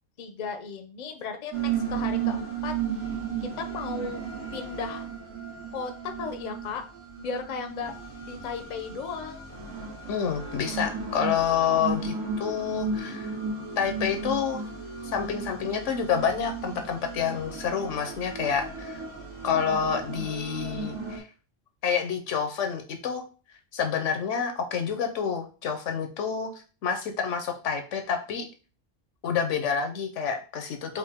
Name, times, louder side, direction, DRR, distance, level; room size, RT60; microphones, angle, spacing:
voice 1, 0.2-2.7 3.4-4.2 4.5-5.1 5.7-6.8 7.2-7.9 8.2-9.5, left 5 dB, 45° left, 6 dB, 0.6 m, -35 dB
sound 1, 1.5-21.2, right 5 dB, 80° right, 2.1 m, -34 dB
voice 2, 10.1-13.3 13.8-14.6 15.0-19.0 19.4-21.2 21.8-23.2 23.7-26.5 26.8-28.5 29.2-31.0, left 7 dB, 85° left, 5 dB, 1.1 m, -28 dB
4.9 x 2.6 x 3.5 m, 0.35 s
omnidirectional pair, 1.2 m